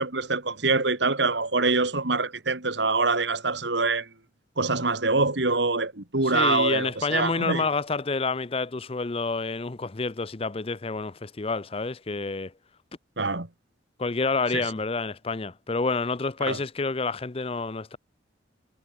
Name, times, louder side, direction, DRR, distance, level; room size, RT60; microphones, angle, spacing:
voice 1, 0.0-4.1 4.6-7.7 13.2-13.5 14.5-14.6 16.4-16.6, right 3 dB, 70° right, 2.5 m, -25 dB
voice 2, 6.2-12.5 14.0-18.0, left 4 dB, 30° left, 0.6 m, -28 dB
head